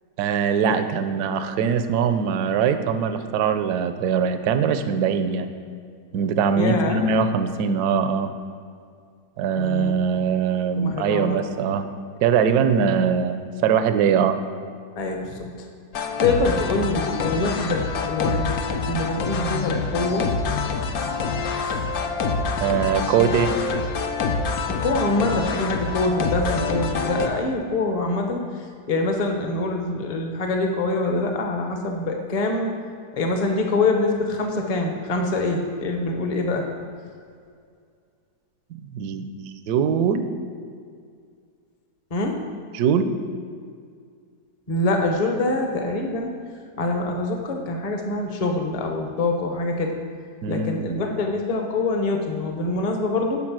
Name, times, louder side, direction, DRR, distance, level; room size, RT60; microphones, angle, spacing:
voice 1, 0.2-5.5 6.1-8.3 9.4-11.8 12.2-14.4 22.6-23.5 38.9-39.3 39.7-40.3 42.7-43.1 50.4-50.8, right 7 dB, 75° right, 9 dB, 1.1 m, -22 dB
voice 2, 6.6-7.0 9.6-10.1 10.8-11.4 15.0-15.7 16.2-18.6 18.9-20.3 21.6-21.8 24.8-32.7 33.1-36.6 42.1-42.4 44.7-46.3 46.8-49.9 50.5-53.4, left 2 dB, 30° left, 3 dB, 0.7 m, -25 dB
sound 1, 15.9-27.3, left 4 dB, 65° left, 1.1 m, -26 dB
11.5 x 4.9 x 6.1 m, 2.2 s
omnidirectional pair, 1.8 m